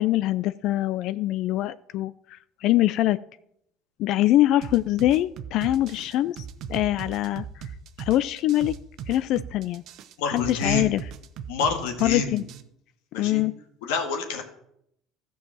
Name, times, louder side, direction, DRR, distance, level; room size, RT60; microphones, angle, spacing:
voice 1, 0.0-3.2 4.0-7.7 8.0-8.7 9.1-9.8 10.3-11.0 12.0-12.4 13.2-13.5, left 14 dB, 60° left, 15 dB, 0.3 m, -24 dB
sound 1, 4.6-12.6, right 8 dB, 60° right, 0.9 m, -38 dB
voice 2, 10.2-10.9 11.5-12.4 13.1-13.4 13.8-14.4, left 4 dB, 85° left, 4 dB, 1.9 m, -27 dB
13.0 x 4.7 x 7.4 m, 0.76 s
supercardioid pair, 105°, 0 cm